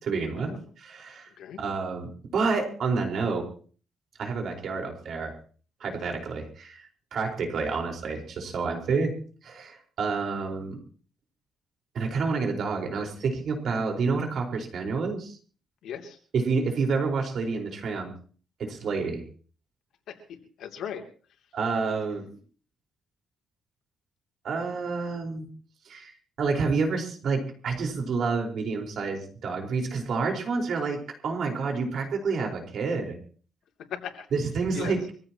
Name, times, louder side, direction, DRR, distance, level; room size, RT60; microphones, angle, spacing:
voice 1, 0.0-1.3 1.6-3.4 4.2-5.3 5.8-9.1 9.4-10.8 11.9-15.4 16.3-18.1 18.6-19.2 21.5-22.3 24.4-25.5 25.8-33.2 34.3-35.0, right 4 dB, 60° right, 2 dB, 4.6 m, -29 dB
voice 2, 15.8-16.2 20.1-20.2 20.6-21.0 22.2-22.3 33.9-34.3 34.7-35.0, left 8 dB, 75° left, 3 dB, 2.9 m, -37 dB
24.5 x 15.5 x 3.0 m, 0.42 s
cardioid pair, 90°, 0 cm